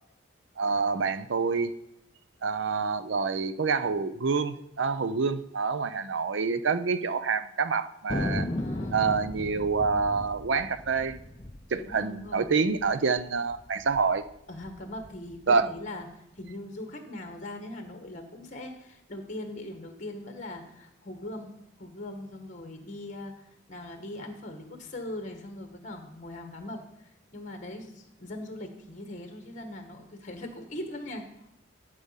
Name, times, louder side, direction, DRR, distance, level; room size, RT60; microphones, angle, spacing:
voice 1, 0.6-1.7 2.4-8.5 8.9-11.2 11.7-14.2 15.5-15.7, right 4 dB, 70° right, 13 dB, 0.6 m, -27 dB
Thunder, 8.1-12.9 13.2-13.3 13.5-14.0 14.5-15.7, left 1 dB, 20° left, 0.6 m, -35 dB
voice 2, 8.6-9.1 11.8-12.5 14.5-21.5 21.8-31.5, left 1 dB, 40° left, 5 dB, 1.3 m, -41 dB
11.5 x 5.0 x 5.7 m, 0.83 s
head